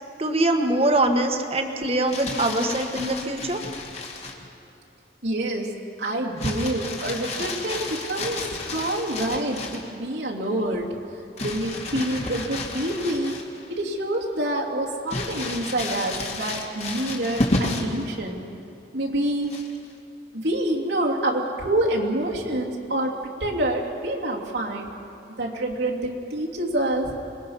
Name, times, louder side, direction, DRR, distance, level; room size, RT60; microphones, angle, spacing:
voice 1, 0.2-3.6, right 1 dB, 35° right, 5 dB, 1.5 m, -23 dB
Crumpling crinkling, 1.9-4.5 6.4-9.9 11.4-13.7 14.1-14.2 15.1-18.0 19.5-19.9, left 2 dB, 40° left, 2.2 m, -31 dB
voice 2, 5.2-5.7 6.0-10.9 11.4-13.4 13.7-18.4 18.9-19.6 20.3-24.9 25.4-27.1, right 1 dB, 80° right, -2 dB, 2.9 m, -27 dB
26.0 x 20.5 x 5.7 m, 2.7 s
head